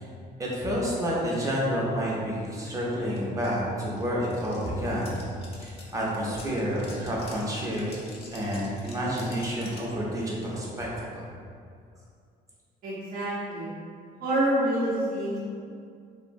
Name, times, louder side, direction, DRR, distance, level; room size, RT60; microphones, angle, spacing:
voice 1, 0.4-5.2 5.6-7.9 8.3-10.9 11.2-11.3, equal, 20° right, -5 dB, 0.6 m, -29 dB
sound 1, 3.2-3.3 3.4-9.9, left 2 dB, 35° left, 0.5 m, -48 dB
voice 2, 12.8-13.7 14.2-15.4, right 1 dB, 60° right, -9 dB, 0.7 m, -27 dB
2.8 x 2.0 x 2.5 m, 2.3 s
cardioid pair, 110°, 17 cm